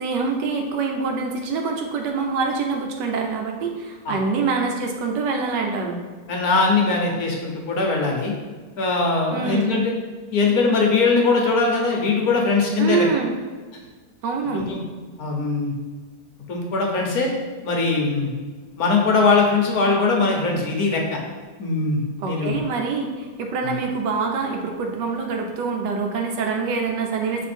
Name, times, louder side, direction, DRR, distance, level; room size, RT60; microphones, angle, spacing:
voice 1, 0.0-6.0 9.3-9.7 12.8-13.3 14.2-14.7 22.2-27.5, right 4 dB, 85° right, 3 dB, 1.5 m, -25 dB
voice 2, 6.3-8.3 8.8-9.9 10.3-13.1 14.5-14.8 15.2-15.7 16.5-17.3 17.6-18.3 18.8-21.0 21.6-22.6 23.6-23.7, left 4 dB, 60° left, 0 dB, 1.4 m, -21 dB
6.3 x 3.5 x 4.3 m, 1.4 s
omnidirectional pair, 1.8 m